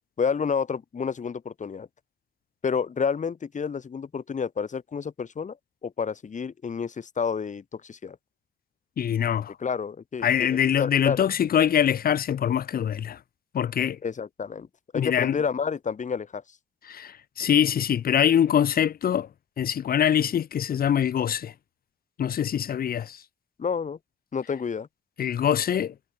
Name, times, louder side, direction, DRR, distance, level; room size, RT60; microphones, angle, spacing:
voice 1, 0.2-1.9 2.6-5.6 5.8-8.2 9.6-11.3 14.0-14.7 14.9-16.4 23.6-24.0 24.3-24.9, left 6 dB, 50° left, 4.0 m, -29 dB
voice 2, 9.0-9.5 10.2-13.2 13.5-14.0 14.9-15.3 16.9-19.3 19.6-21.5 22.2-23.2 25.2-25.9, left 9 dB, 65° left, 1.1 m, -24 dB
cardioid pair, 85°, 16 cm